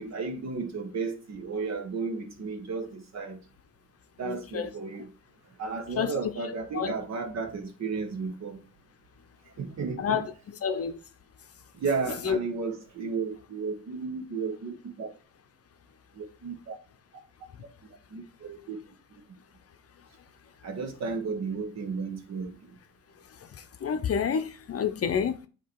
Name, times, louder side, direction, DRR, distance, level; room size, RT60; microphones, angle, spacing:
voice 1, 0.0-3.4 4.2-5.1 5.6-8.6 9.6-10.2 11.8-15.1 16.2-16.7 17.6-17.7 18.1-18.8 20.6-22.6, right 4 dB, 50° right, 1.5 m, -33 dB
voice 2, 4.2-4.7 6.0-6.1 6.7-6.9 10.0-10.2 10.6-11.0 12.2-12.4 23.8-25.5, left 7 dB, 45° left, 0.7 m, -28 dB
8.1 x 3.0 x 4.6 m
cardioid pair, 90°, 34 cm